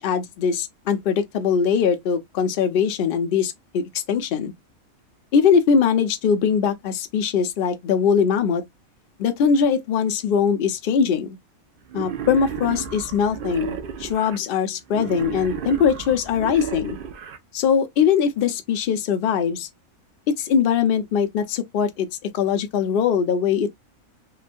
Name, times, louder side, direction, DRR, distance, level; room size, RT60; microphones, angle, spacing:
voice 1, 0.0-4.5 5.3-8.6 9.2-11.4 11.9-17.0 17.5-19.7 20.4-23.7, left 7 dB, 65° left, 0.5 m, -21 dB
Wild animals, 11.9-14.4 14.9-17.4, right 7 dB, 65° right, 0.5 m, -32 dB
2.9 x 2.2 x 2.5 m
omnidirectional pair, 1.5 m